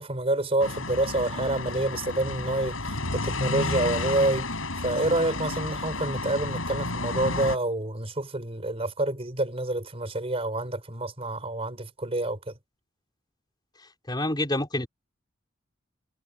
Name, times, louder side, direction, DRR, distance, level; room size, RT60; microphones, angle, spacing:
voice 1, 0.0-4.5 4.8-12.5, right 2 dB, 30° right, 4.8 m, -28 dB
sound 1, 0.6-7.6, left 2 dB, 90° left, 8.0 m, -31 dB
voice 2, 14.1-14.9, left 1 dB, 20° left, 4.4 m, -27 dB
head